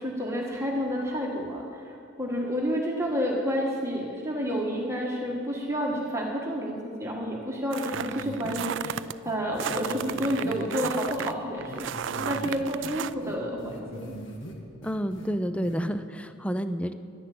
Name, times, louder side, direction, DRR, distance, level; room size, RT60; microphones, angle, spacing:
voice 1, 0.0-14.1, equal, 15° right, -2 dB, 1.6 m, -30 dB
sound 1, 7.7-9.1 9.6-13.1, right 8 dB, 65° right, 0.4 m, -34 dB
sound 2, 7.9-8.5 8.8-8.9 9.3-9.4 9.7-11.3 11.7-12.5 12.8-14.5 14.8-15.3 15.6-15.8, equal, 70° left, 1.9 m, -42 dB
voice 2, 14.8-16.9, equal, 5° left, 10 dB, 0.4 m, -29 dB
11.5 x 10.0 x 8.5 m, 2.4 s
head